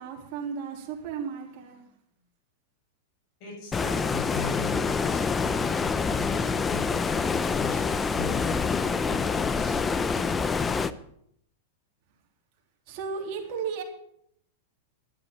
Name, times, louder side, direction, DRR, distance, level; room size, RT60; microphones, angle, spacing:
voice 1, 0.0-1.8 12.9-13.8, right 6 dB, 45° right, 3.3 m, -34 dB
voice 2, 3.4-6.9 7.6-9.8, left 4 dB, 45° left, 7.4 m, -39 dB
Stream, 3.7-10.9, left 5 dB, 15° left, 0.6 m, -26 dB
12.0 x 8.5 x 7.6 m
supercardioid pair, 140°, 0 cm